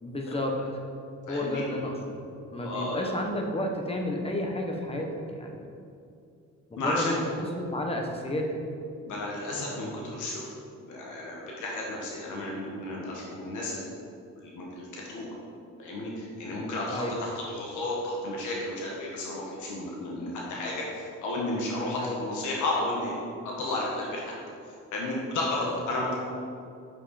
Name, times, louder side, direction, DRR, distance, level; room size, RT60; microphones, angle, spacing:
voice 1, 0.0-0.5 1.3-2.2 2.5-5.6 6.7-8.6 16.9-17.2 22.0-22.2, left 1 dB, 20° left, 2 dB, 1.2 m, -31 dB
voice 2, 1.3-1.6 2.6-3.1 6.8-7.2 9.0-10.5 10.8-13.9 14.4-15.3 15.8-23.2 23.4-24.3 24.9-26.1, left 2 dB, 80° left, -3 dB, 1.5 m, -32 dB
7.9 x 5.4 x 4.2 m, 2.5 s
cardioid pair, 90°, 30 cm